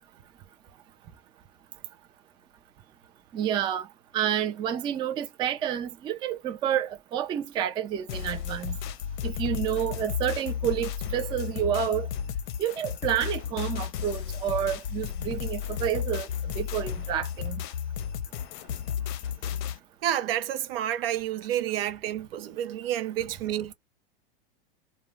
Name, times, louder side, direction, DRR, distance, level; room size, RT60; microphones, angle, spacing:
voice 1, 3.3-3.9 4.1-8.8 9.2-12.1 12.6-16.3 16.6-17.6, right 10 dB, 15° right, 0.3 m, -29 dB
sound 1, 8.1-19.8, left 9 dB, 55° left, 0.6 m, -33 dB
voice 2, 20.0-23.7, right 11 dB, 75° right, 0.7 m, -29 dB
2.3 x 2.1 x 3.1 m
hypercardioid pair, 125°, 29 cm